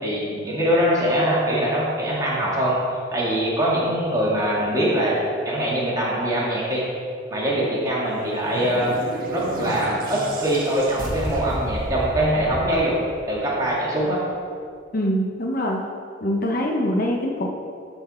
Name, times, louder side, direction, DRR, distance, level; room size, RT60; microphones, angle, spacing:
voice 1, 0.0-2.8 3.1-5.2 5.4-6.8 7.3-9.0 9.3-13.0 13.3-14.2, right 1 dB, 20° right, -6 dB, 2.2 m, -23 dB
sound 1, 8.1-13.5, right 1 dB, 50° right, 1.1 m, -31 dB
voice 2, 14.9-15.8 16.2-17.5, equal, 50° left, 1 dB, 0.8 m, -23 dB
13.5 x 4.5 x 4.4 m, 2.2 s
head